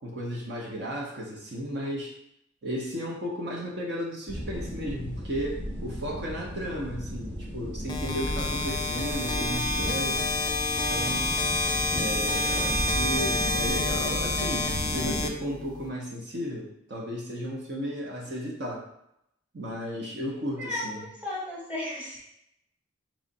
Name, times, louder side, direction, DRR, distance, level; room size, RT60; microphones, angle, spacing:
voice 1, 0.0-2.1 2.6-10.2 10.8-11.3 12.0-18.9 19.5-21.1, equal, 60° right, -2 dB, 0.9 m, -34 dB
sound 1, 4.3-15.3, equal, 80° right, 1.4 m, -35 dB
sound 2, 7.9-15.9, left 2 dB, 20° left, 0.3 m, -29 dB
voice 2, 20.6-22.2, left 2 dB, 10° right, -5 dB, 1.1 m, -35 dB
3.6 x 3.2 x 4.0 m, 0.78 s
head